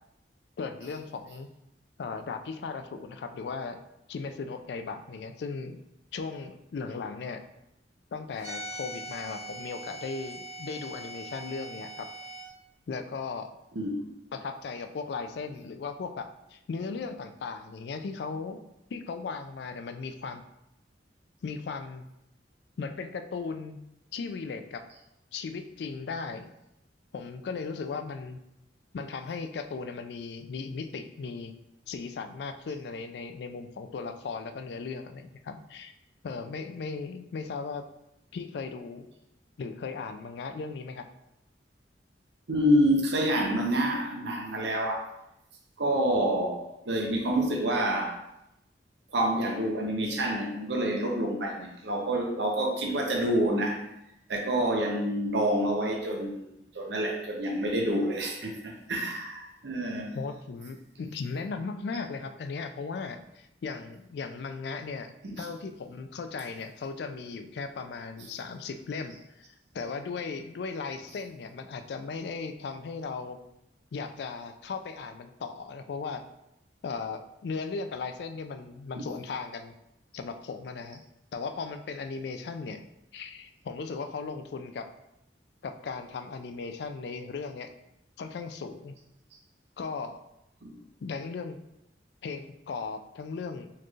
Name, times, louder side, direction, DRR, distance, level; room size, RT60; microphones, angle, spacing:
voice 1, 0.6-1.5 2.0-3.8 4.1-5.8 6.1-7.4 8.1-12.1 12.9-13.5 14.3-18.6 18.9-20.4 21.4-22.1 22.8-23.8 24.1-24.8 25.3-26.5 27.1-28.4 28.9-31.5 31.9-35.9 36.2-37.9 38.3-39.1 39.6-41.0 60.1-69.5 69.7-73.4 73.9-76.2 76.8-79.7 80.1-81.0 81.3-82.8 83.1-84.9 85.6-87.7 88.2-88.9 89.8-90.2 91.0-91.6 92.2-93.7, left 4 dB, 65° left, 7 dB, 0.3 m, -37 dB
sound 1, 8.4-12.5, right 1 dB, 15° right, 1.3 m, -41 dB
voice 2, 42.5-45.1 45.8-48.2 49.1-53.8 54.3-56.4 56.7-60.1 65.2-65.5 78.9-79.0 90.6-90.7, right 1 dB, 70° right, 1 dB, 0.7 m, -27 dB
4.4 x 3.1 x 2.4 m, 0.85 s
head